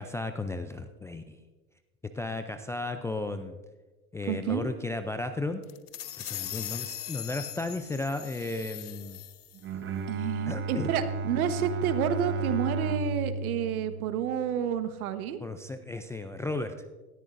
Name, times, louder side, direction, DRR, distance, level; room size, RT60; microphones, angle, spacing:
voice 1, 0.0-1.4 2.1-3.6 4.1-5.6 6.2-9.2 10.5-10.9 15.4-16.7, left 2 dB, 5° left, 7 dB, 0.3 m, -34 dB
voice 2, 4.3-4.7 10.1-15.4, right 8 dB, 70° right, 10 dB, 1.3 m, -30 dB
sound 1, 5.6-9.6, left 12 dB, 90° left, 0.8 m, -40 dB
Bowed string instrument, 9.5-14.9, right 3 dB, 25° right, 1.0 m, -34 dB
18.5 x 13.5 x 2.6 m, 1.2 s
hypercardioid pair, 95°, 44 cm